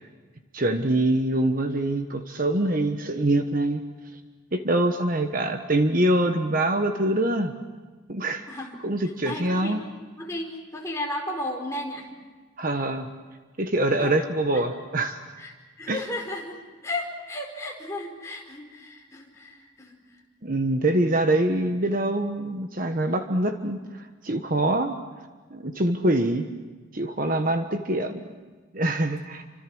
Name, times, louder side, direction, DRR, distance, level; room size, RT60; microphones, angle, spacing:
voice 1, 0.5-3.8 4.5-7.5 8.1-8.5 8.8-9.8 12.6-13.1 13.6-15.2 15.9-16.0 20.4-25.0 25.5-26.5 26.9-28.2 28.7-29.4, right 1 dB, 40° right, 6 dB, 1.3 m, -24 dB
voice 2, 9.2-9.8 10.2-12.1 14.0-14.2 14.5-14.6 15.4-15.5 15.8-16.6 16.8-19.9, left 1 dB, 15° left, 0 dB, 4.8 m, -34 dB
29.5 x 25.5 x 6.3 m, 1.4 s
head